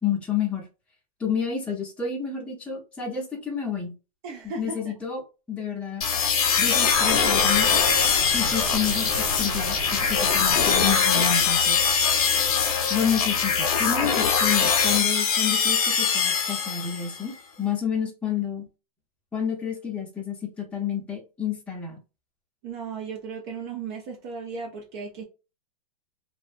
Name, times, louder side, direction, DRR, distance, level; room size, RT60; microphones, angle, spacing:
voice 1, 0.0-0.7 1.2-3.9 4.4-5.2 5.5-6.0 6.6-7.7 8.3-11.8 12.9-18.7 19.3-22.0, left 7 dB, 5° left, 0.7 m, -29 dB
voice 2, 4.2-4.8 22.6-25.2, right 5 dB, 40° right, 0.6 m, -35 dB
sound 1, 6.0-17.2, left 6 dB, 70° left, 0.7 m, -22 dB
sound 2, 6.9-10.9, right 4 dB, 70° right, 0.9 m, -34 dB
2.5 x 2.1 x 2.5 m
hypercardioid pair, 135°, 19 cm